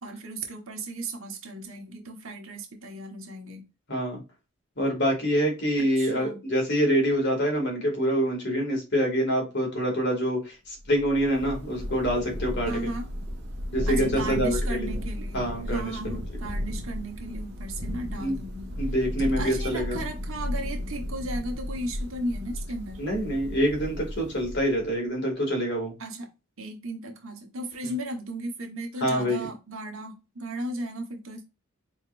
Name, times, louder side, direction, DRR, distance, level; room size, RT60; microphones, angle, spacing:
voice 1, 0.0-3.6 5.8-6.4 12.6-13.1 13.9-18.7 19.2-23.0 26.0-26.3 26.6-31.4, right 1 dB, 65° right, 3 dB, 1.2 m, -35 dB
voice 2, 3.9-4.2 4.8-12.9 13.7-14.9 15.3-15.9 18.2-18.4 18.8-20.0 23.0-25.9 27.8-27.9 29.0-29.4, equal, 50° left, 1 dB, 2.3 m, -26 dB
Thunder / Rain, 10.8-24.9, equal, 50° right, 1.5 m, -34 dB
4.5 x 4.0 x 2.5 m, 0.28 s
head